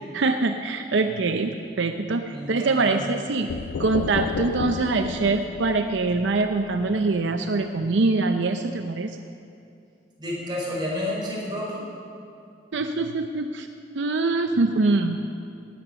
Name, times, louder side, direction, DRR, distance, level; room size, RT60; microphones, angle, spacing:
voice 1, 0.1-3.5 3.8-9.2 12.7-13.7 13.9-15.2, right 3 dB, 75° right, 7 dB, 0.6 m, -24 dB
voice 2, 2.3-3.0 10.2-11.8, left 1 dB, 25° right, -5 dB, 4.6 m, -30 dB
sound 1, 3.5-7.2, left 6 dB, 65° left, 0.3 m, -32 dB
18.0 x 8.8 x 6.9 m, 2.5 s
head